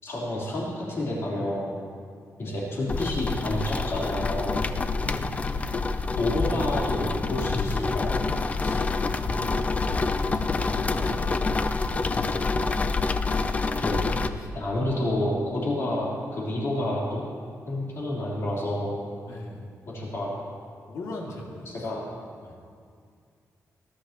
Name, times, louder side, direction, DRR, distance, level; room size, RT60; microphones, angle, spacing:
voice 1, 0.0-1.7 2.4-4.6 6.2-8.2 11.0-11.1 13.8-14.0 14.5-17.2 17.7-19.0 19.9-20.5 21.7-22.1, left 1 dB, 55° left, -6 dB, 3.6 m, -29 dB
sound 1, 2.9-14.3, left 3 dB, 25° left, 0.4 m, -27 dB
voice 2, 5.0-5.3 8.6-9.4 10.3-12.4 14.4-14.5 19.3-19.6 20.9-21.7 22.4-22.5, left 2 dB, 80° left, -1 dB, 2.2 m, -40 dB
20.0 x 11.5 x 3.0 m, 2.2 s
wide cardioid pair, 165°, 6 cm